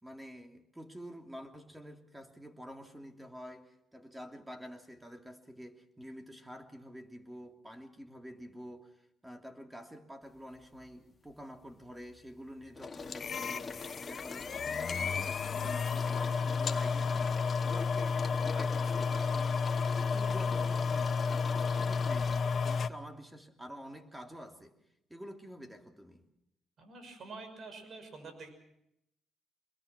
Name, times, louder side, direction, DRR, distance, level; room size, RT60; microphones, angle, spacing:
voice 1, 0.0-24.7 25.1-26.2, equal, 10° right, 4 dB, 3.0 m, -48 dB
sound 1, 10.4-10.9 11.3-22.4, left 4 dB, 30° left, 2.7 m, -45 dB
sound 2, 13.1-22.9, left 5 dB, 50° left, 1.1 m, -32 dB
voice 2, 26.8-28.5, right 3 dB, 55° right, 8 dB, 6.1 m, -47 dB
25.0 x 22.0 x 6.1 m, 0.81 s
cardioid pair, 90°, 0 cm